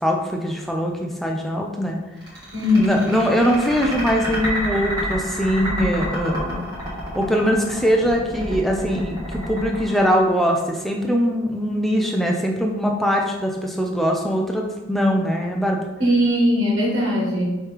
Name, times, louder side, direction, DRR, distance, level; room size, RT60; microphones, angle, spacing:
voice 1, 0.0-2.0 2.8-6.7 7.1-15.8, equal, ahead, 0 dB, 0.4 m, -22 dB
sound 1, 2.2-10.9, equal, 20° right, 1.3 m, -30 dB
voice 2, 2.5-3.0 16.0-17.4, left 1 dB, 60° right, -4 dB, 1.4 m, -19 dB
5.4 x 3.0 x 3.2 m, 1.1 s
head